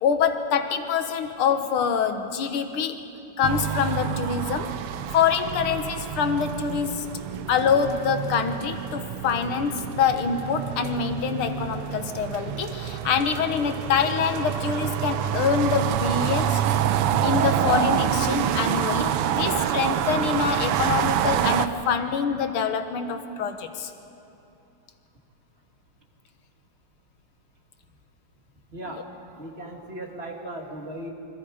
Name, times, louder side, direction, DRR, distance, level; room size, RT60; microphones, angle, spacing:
voice 1, 0.0-3.0 3.4-4.7 5.1-7.1 7.5-16.6 17.2-23.9, left 6 dB, 75° left, 7 dB, 2.1 m, -25 dB
sound 1, 3.4-21.7, right 10 dB, 85° right, 1.7 m, -27 dB
voice 2, 28.7-29.0 29.4-31.1, right 1 dB, 30° right, 1 dB, 2.3 m, -37 dB
28.0 x 26.0 x 5.1 m, 2.8 s
omnidirectional pair, 2.4 m